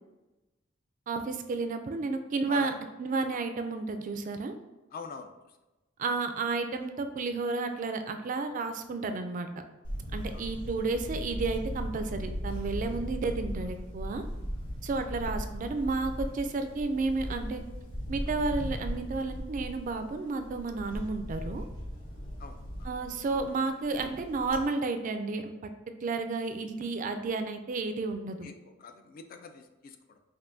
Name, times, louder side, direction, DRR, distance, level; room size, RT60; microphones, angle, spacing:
voice 1, 1.1-2.7 3.0-4.6 6.0-9.5 10.1-14.2 14.8-17.6 18.1-21.6 22.9-25.5 26.0-28.4, right 3 dB, 40° right, 7 dB, 0.3 m, -32 dB
voice 2, 4.9-5.6 10.3-10.5 15.0-15.1 22.4-22.9 28.4-30.2, left 5 dB, 45° left, 7 dB, 0.3 m, -45 dB
Camera, 9.8-24.6, equal, 75° left, 1.0 m, -38 dB
5.3 x 2.6 x 2.6 m, 1.1 s
head